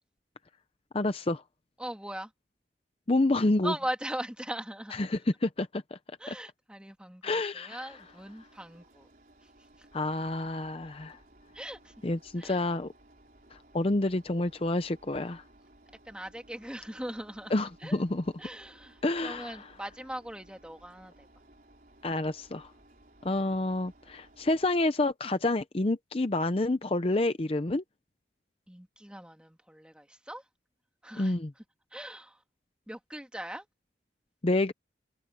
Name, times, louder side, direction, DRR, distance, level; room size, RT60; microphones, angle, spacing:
voice 1, 0.9-1.4 3.1-3.7 5.0-6.0 6.3-6.4 7.2-7.8 9.9-11.2 12.0-12.9 13.5-15.4 17.5-18.2 19.0-19.6 22.0-22.7 23.2-27.8 31.2-31.5 34.4-34.7, left 2 dB, 30° left, 0.6 m, -28 dB
voice 2, 1.8-2.3 3.6-5.0 6.2-9.1 9.4-9.9 11.5-11.9 12.4-12.6 16.0-18.0 18.4-21.3 28.7-30.5 31.0-31.6 31.9-32.4 32.9-33.7, right 1 dB, 5° right, 2.1 m, -40 dB
Engine, 7.9-24.8, right 1 dB, 50° right, 4.4 m, -59 dB
head